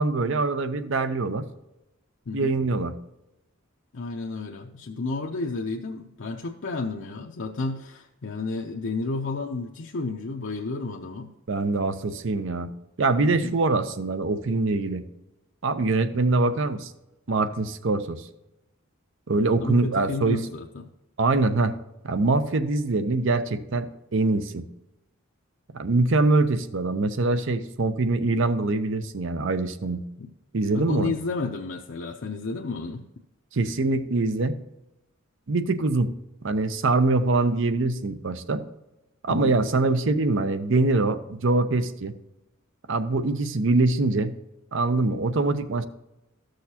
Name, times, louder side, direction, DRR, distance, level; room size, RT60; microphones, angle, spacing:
voice 1, 0.0-1.5 2.3-2.9 11.5-12.7 13.0-15.0 15.6-16.9 17.3-18.3 19.3-20.4 21.2-21.8 22.0-24.6 25.7-30.0 30.5-31.1 33.5-34.6 35.5-36.1 36.4-38.6 39.2-42.1 42.9-44.3 44.7-45.8, right 3 dB, 65° right, 11 dB, 0.6 m, -24 dB
voice 2, 3.9-11.3 13.4-13.6 19.5-20.8 30.2-30.3 30.7-33.0 39.3-39.6, left 3 dB, 60° left, 0 dB, 0.6 m, -31 dB
13.5 x 6.4 x 2.8 m, 0.97 s
head